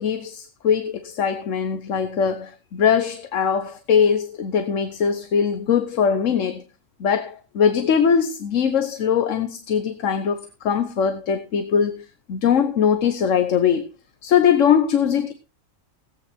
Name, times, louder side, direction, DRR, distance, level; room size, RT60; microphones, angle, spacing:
voice 1, 0.0-6.6 7.0-13.9 14.2-15.3, left 7 dB, 80° left, 1.3 m, -21 dB
17.0 x 9.0 x 4.3 m
omnidirectional pair, 1.3 m